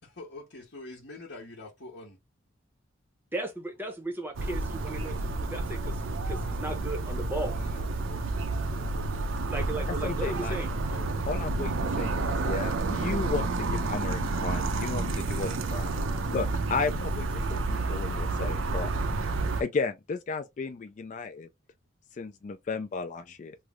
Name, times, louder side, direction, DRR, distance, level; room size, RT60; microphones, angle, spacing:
voice 1, 0.0-2.2 7.4-9.3 10.8-11.3 23.2-23.3, left 2 dB, 60° left, 1.0 m, -46 dB
voice 2, 3.3-7.5 9.5-10.7, right 1 dB, 10° right, 0.7 m, -36 dB
sound 1, 4.3-19.6, right 3 dB, 75° right, 0.5 m, -30 dB
voice 3, 9.9-10.6 11.3-15.9 16.3-18.9 19.6-21.5 22.1-23.6, left 4 dB, 40° left, 0.3 m, -34 dB
3.2 x 2.0 x 3.5 m
head